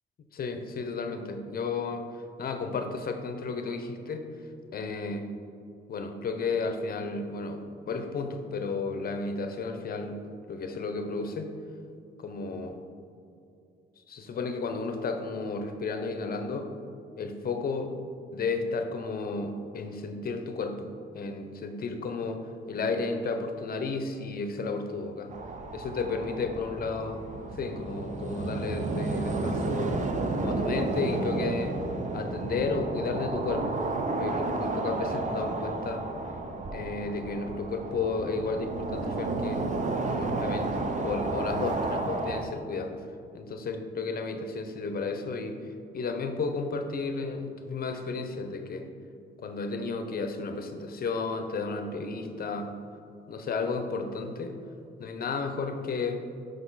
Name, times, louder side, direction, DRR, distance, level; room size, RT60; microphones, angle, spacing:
voice 1, 0.3-2.1 2.4-4.2 4.7-5.2 5.9-10.2 10.5-11.5 12.2-12.8 14.1-16.7 17.2-17.9 18.3-20.9 21.1-22.4 22.7-25.3 25.7-27.2 27.5-30.0 30.4-31.7 32.1-33.9 34.2-36.0 36.7-42.9 43.3-45.6 45.9-48.9 49.4-52.7 53.3-54.5 55.0-56.2, left 4 dB, 50° left, 6 dB, 0.7 m, -33 dB
sound 1, 25.3-42.4, right 3 dB, 40° right, 0.6 m, -32 dB
6.1 x 5.1 x 4.0 m, 2.5 s
cardioid pair, 90°, 20 cm